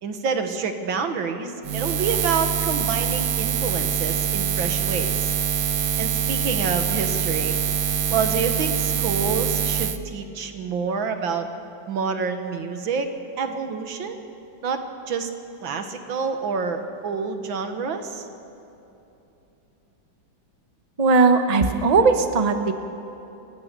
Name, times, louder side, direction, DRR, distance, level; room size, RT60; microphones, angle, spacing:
voice 1, 0.0-5.3 5.8-7.6 8.1-11.5 11.9-14.2 14.6-15.3 15.6-18.3, right 5 dB, 80° right, 7 dB, 2.2 m, -28 dB
Buzz, 1.6-10.0, right 8 dB, 60° right, 1.1 m, -24 dB
voice 2, 21.0-22.7, right 4 dB, 25° right, 7 dB, 0.9 m, -18 dB
28.0 x 15.5 x 6.8 m, 2.9 s
omnidirectional pair, 2.1 m